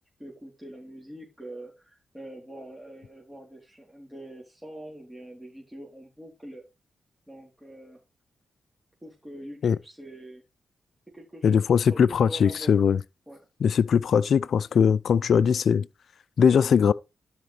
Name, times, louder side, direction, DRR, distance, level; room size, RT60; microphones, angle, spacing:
voice 1, 0.2-6.6 7.3-8.0 9.0-10.4 11.1-11.6 11.9-12.8 13.3-13.4, right 1 dB, 5° right, 3.5 m, -44 dB
voice 2, 11.4-13.0 13.6-15.9 16.4-16.9, left 7 dB, 70° left, 0.4 m, -20 dB
12.5 x 5.1 x 3.4 m
supercardioid pair, 50°, 0 cm